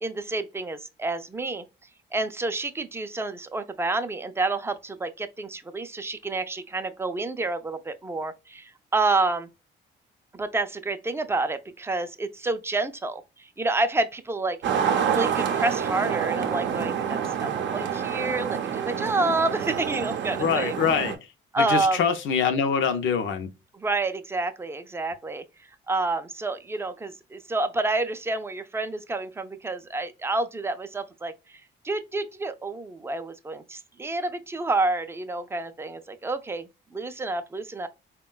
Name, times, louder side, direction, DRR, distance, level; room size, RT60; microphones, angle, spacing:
voice 1, 0.0-1.6 2.1-9.5 10.3-14.6 15.1-20.8 21.5-22.1 23.7-25.4 25.9-37.9, right 2 dB, 10° right, 0.4 m, -29 dB
sound 1, 14.6-21.2, right 8 dB, 65° right, 0.5 m, -27 dB
voice 2, 20.4-21.2 21.6-23.5, left 6 dB, 75° left, 0.6 m, -24 dB
3.6 x 2.2 x 2.2 m
cardioid pair, 90°, 20 cm